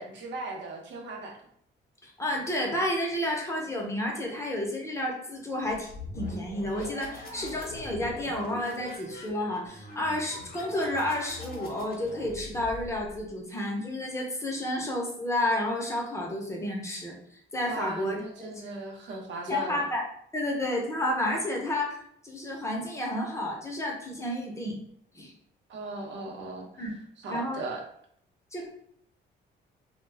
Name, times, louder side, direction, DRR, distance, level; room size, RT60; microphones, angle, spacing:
voice 1, 0.0-1.4 17.6-19.9 25.7-26.8 27.2-27.8, right 2 dB, 65° right, 1 dB, 0.7 m, -38 dB
voice 2, 2.0-17.1 17.5-18.6 19.5-20.0 20.3-22.0 22.2-24.8 25.1-25.3 26.8-26.9 27.3-27.6 28.5-28.7, left 1 dB, 15° left, -1 dB, 0.8 m, -31 dB
sound 1, 5.7-13.3, left 3 dB, 50° left, 0.9 m, -42 dB
2.2 x 2.2 x 3.3 m, 0.66 s
cardioid pair, 90°, 20 cm